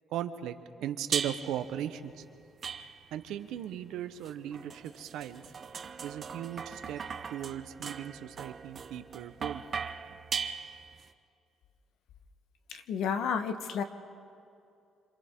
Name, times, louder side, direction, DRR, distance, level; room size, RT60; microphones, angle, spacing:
voice 1, 0.1-2.2 3.1-5.4 6.0-7.0 7.3-9.6 10.1-10.2, right 10 dB, 85° right, 9 dB, 1.0 m, -38 dB
sound 1, 1.1-1.7 2.6-3.3 4.2-11.1, right 6 dB, 40° right, 0.8 m, -39 dB
voice 2, 12.7-13.8, left 6 dB, 75° left, 8 dB, 1.2 m, -31 dB
27.0 x 27.0 x 3.8 m, 2.5 s
cardioid pair, 130°, 0 cm